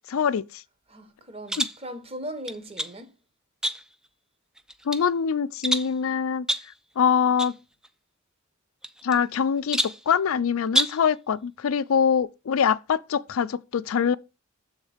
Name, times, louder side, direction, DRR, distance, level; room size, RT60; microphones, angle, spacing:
voice 1, 0.1-0.6 1.6-1.7 4.8-6.5 7.0-7.5 9.0-14.1, left 7 dB, 80° left, 0.4 m, -24 dB
voice 2, 0.9-3.1, equal, 30° right, 1.0 m, -38 dB
sound 1, 1.5-1.8 2.5-3.0 3.6-4.1 4.6-5.1 5.6-6.0 6.5-6.8 7.4-7.6 7.8-7.9 8.8-9.4 9.7-10.1 10.7-11.1, equal, 5° right, 0.3 m, -28 dB
7.2 x 3.7 x 4.9 m
head